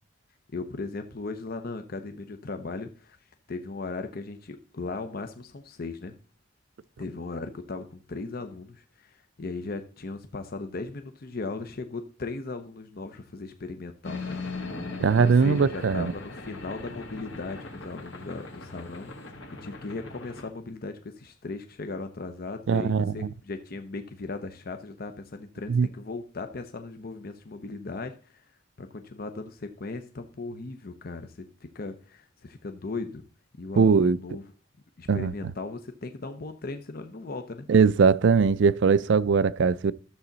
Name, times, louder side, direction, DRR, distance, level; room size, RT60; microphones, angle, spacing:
voice 1, 0.5-3.2 3.5-6.1 7.0-14.7 15.2-28.4 28.8-33.2 33.6-34.5 35.0-37.7, left 3 dB, 50° left, 0.8 m, -37 dB
sound 1, 14.0-20.5, left 3 dB, 70° left, 1.8 m, -39 dB
voice 2, 15.0-16.1 22.7-23.3 25.7-25.9 33.8-34.2 35.1-35.3 37.7-39.9, right 5 dB, 65° right, 0.4 m, -21 dB
13.0 x 7.1 x 4.0 m
head